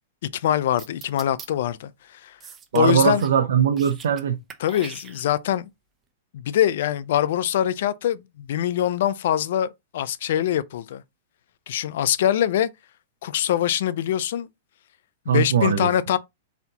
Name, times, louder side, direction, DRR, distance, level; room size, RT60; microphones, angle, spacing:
voice 1, 0.2-2.4 2.7-3.2 4.6-5.7 6.3-11.0 11.7-12.7 13.2-14.5 15.3-16.2, left 11 dB, 65° left, 0.4 m, -23 dB
sound 1, 0.8-1.5 2.4-3.4 3.7-4.2 4.5-5.5, right 7 dB, 20° right, 0.6 m, -42 dB
voice 2, 2.7-4.4 15.3-15.9, right 8 dB, 85° right, 0.7 m, -20 dB
4.1 x 2.8 x 4.0 m
hypercardioid pair, 150°, 0 cm